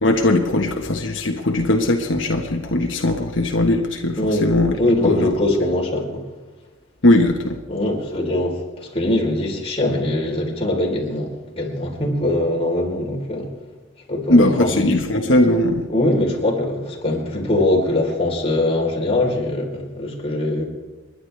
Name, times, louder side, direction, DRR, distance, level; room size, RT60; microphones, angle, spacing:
voice 1, 0.0-5.3 7.0-7.6 14.3-15.9, left 1 dB, 90° left, 2 dB, 1.4 m, -19 dB
voice 2, 4.2-4.5 4.8-6.2 7.7-13.5 14.1-14.8 15.9-20.6, left 1 dB, 30° left, -2 dB, 3.9 m, -22 dB
29.5 x 11.0 x 3.4 m, 1.3 s
head